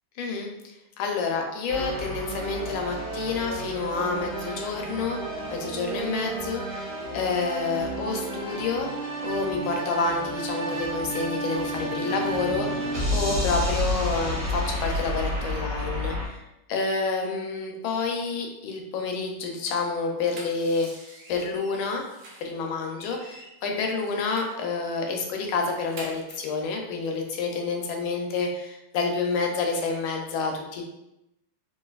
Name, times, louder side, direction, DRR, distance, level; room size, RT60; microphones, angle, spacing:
voice 1, 0.2-0.5 1.0-8.9 9.2-16.4 16.7-22.0 22.4-30.8, left 4 dB, 80° left, 2 dB, 1.4 m, -29 dB
sound 1, 1.7-16.3, equal, 45° right, 1.0 m, -31 dB
sound 2, 20.1-22.6 22.9-24.6 25.0-25.2 25.5-26.5, right 2 dB, 75° right, 0.8 m, -47 dB
3.8 x 2.5 x 2.3 m, 0.90 s
omnidirectional pair, 2.3 m